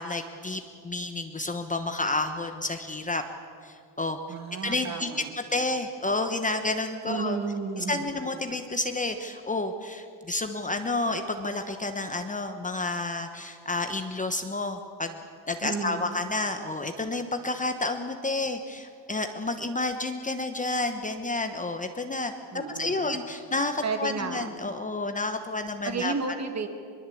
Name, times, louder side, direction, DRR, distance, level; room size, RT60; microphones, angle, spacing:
voice 1, 0.0-3.2 3.6-4.2 4.6-5.1 5.4-7.4 7.8-15.2 15.5-26.1, left 2 dB, 15° left, 6 dB, 1.1 m, -30 dB
voice 2, 4.3-5.3 7.1-8.2 15.6-16.1 22.5-23.2 23.8-24.5 25.8-26.7, right 4 dB, 35° right, 7 dB, 2.2 m, -32 dB
22.5 x 22.5 x 8.5 m, 2.4 s
cardioid pair, 145°, 46 cm